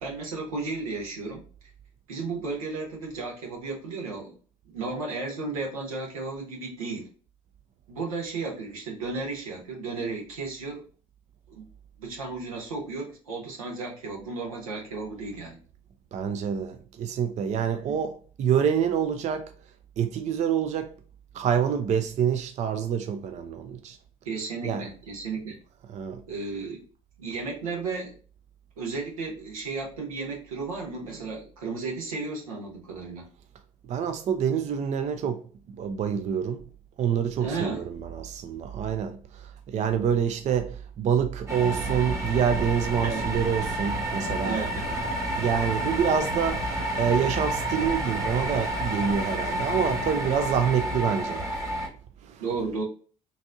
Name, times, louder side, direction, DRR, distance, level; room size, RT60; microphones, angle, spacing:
voice 1, 0.0-1.4 2.1-4.3 4.6-7.1 7.9-10.8 11.5-11.6 12.0-15.6 24.2-25.6 26.3-26.8 27.2-28.1 28.8-33.3 37.4-37.8 43.0-43.2 44.4-44.9 52.4-52.8, right 3 dB, 85° right, 1.0 m, -34 dB
voice 2, 16.1-19.5 20.0-20.9 21.3-24.0 24.6-24.9 25.9-26.2 33.9-35.4 35.7-36.6 37.0-39.2 39.7-44.6 45.4-51.4 52.3-52.4, right 7 dB, 40° right, 0.4 m, -27 dB
sound 1, 41.5-51.9, right 1 dB, 15° right, 1.2 m, -30 dB
3.9 x 2.6 x 2.5 m
hypercardioid pair, 55°, 17 cm